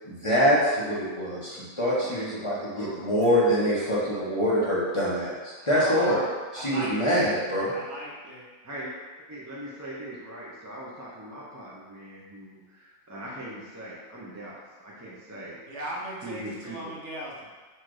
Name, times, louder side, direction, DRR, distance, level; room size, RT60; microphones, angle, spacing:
voice 1, 0.0-6.2 6.5-7.7, equal, 25° left, -8 dB, 1.0 m, -25 dB
voice 2, 3.2-3.6 5.7-6.2 6.5-7.3 7.7-8.5 15.7-17.5, right 1 dB, 70° right, -4 dB, 1.2 m, -37 dB
voice 3, 9.3-15.6 16.2-16.8, right 1 dB, 20° right, -6 dB, 0.4 m, -40 dB
4.4 x 2.5 x 4.7 m, 1.3 s
omnidirectional pair, 1.2 m